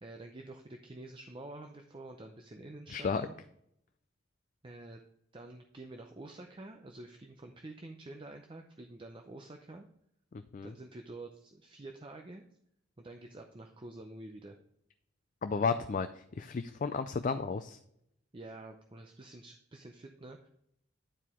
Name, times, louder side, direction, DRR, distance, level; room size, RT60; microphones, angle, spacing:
voice 1, 0.0-3.3 4.6-5.0 5.3-9.8 10.6-12.4 13.0-14.6 18.3-20.5, right 2 dB, 25° right, 4 dB, 0.5 m, -48 dB
voice 2, 2.9-3.3 10.5-10.7 15.4-17.8, left 5 dB, 40° left, 9 dB, 0.3 m, -33 dB
9.9 x 4.7 x 3.6 m, 0.74 s
head